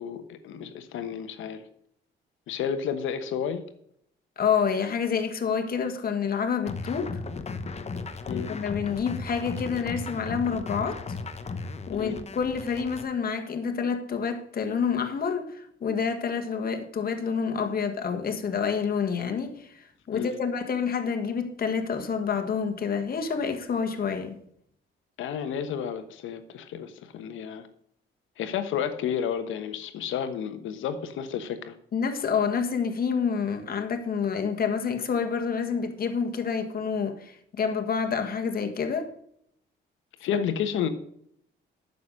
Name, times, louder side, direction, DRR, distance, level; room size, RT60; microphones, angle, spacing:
voice 1, 0.0-1.6 2.5-3.6 8.3-8.5 11.9-12.2 20.1-20.3 25.2-27.7 28.4-31.7 40.2-40.9, left 8 dB, 85° left, 1.2 m, -31 dB
voice 2, 4.4-7.2 8.3-11.2 11.9-24.4 31.9-39.1 40.3-40.4, left 6 dB, 50° left, 1.8 m, -28 dB
sound 1, 6.7-13.1, left 4 dB, 35° left, 1.0 m, -36 dB
9.7 x 6.9 x 6.4 m
cardioid pair, 90°, 20 cm